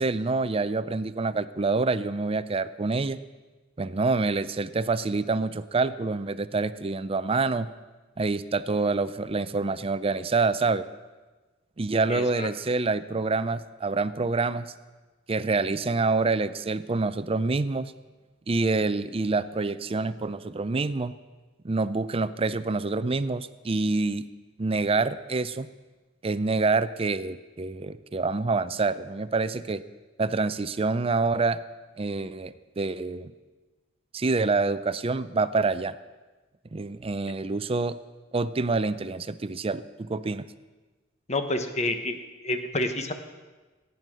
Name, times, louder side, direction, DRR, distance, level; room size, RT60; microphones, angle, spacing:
voice 1, 0.0-3.2 3.8-7.7 8.2-10.9 11.8-14.7 15.3-17.9 18.5-21.1 21.6-24.2 24.6-25.7 26.2-29.8 30.2-31.6 32.0-33.3 34.1-35.9 36.7-38.0 38.3-40.4, right 3 dB, 30° right, 15 dB, 0.5 m, -26 dB
voice 2, 12.1-12.5 41.3-42.2 42.4-43.1, left 2 dB, 35° left, 7 dB, 1.1 m, -28 dB
17.5 x 9.3 x 6.3 m, 1.2 s
head